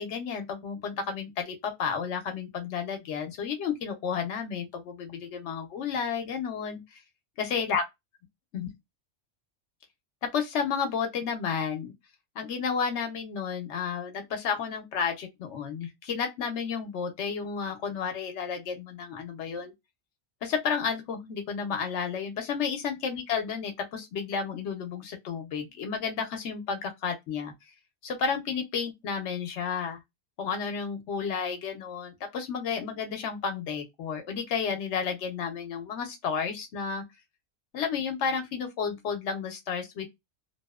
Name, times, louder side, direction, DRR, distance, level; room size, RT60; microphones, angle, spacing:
voice 1, 0.0-7.0 7.4-7.8 8.5-8.7 10.2-11.9 12.4-19.7 20.4-27.5 28.0-30.0 30.4-37.0 37.7-40.1, left 6 dB, 85° left, 0.9 m, -32 dB
2.7 x 2.0 x 2.2 m
omnidirectional pair, 1.1 m